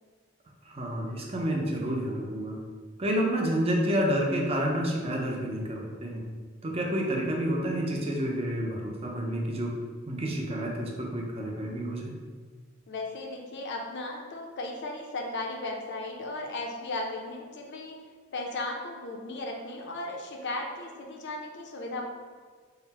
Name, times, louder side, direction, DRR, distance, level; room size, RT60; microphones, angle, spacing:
voice 1, 0.6-2.6 3.0-6.3 6.6-9.7 10.1-12.1, equal, 30° right, -1 dB, 0.6 m, -29 dB
voice 2, 12.9-18.0 18.3-22.0, left 2 dB, 60° left, 0 dB, 0.6 m, -36 dB
3.9 x 2.1 x 4.1 m, 1.5 s
head